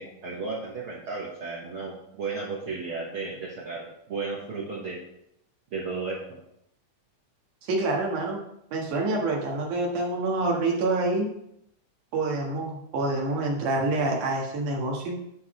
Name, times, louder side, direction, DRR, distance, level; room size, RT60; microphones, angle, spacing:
voice 1, 0.0-5.0 5.7-6.4, right 4 dB, 55° right, -5 dB, 1.8 m, -34 dB
voice 2, 7.6-8.4 8.7-11.3 12.1-15.2, right 2 dB, 80° right, -1 dB, 3.1 m, -27 dB
11.0 x 3.9 x 4.9 m, 0.76 s
omnidirectional pair, 3.6 m